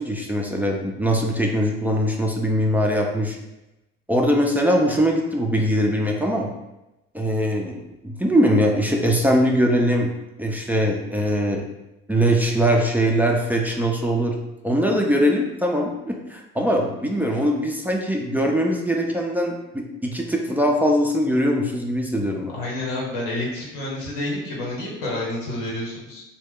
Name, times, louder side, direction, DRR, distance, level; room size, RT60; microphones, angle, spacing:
voice 1, 0.0-3.4 4.1-6.5 7.1-10.1 10.4-11.6 12.1-14.4 14.6-15.9 16.3-22.5, equal, 5° right, -1 dB, 0.5 m, -21 dB
voice 2, 22.5-26.2, left 1 dB, 85° left, -4 dB, 1.1 m, -29 dB
2.8 x 2.2 x 3.6 m, 0.95 s
hypercardioid pair, 65°, 30 cm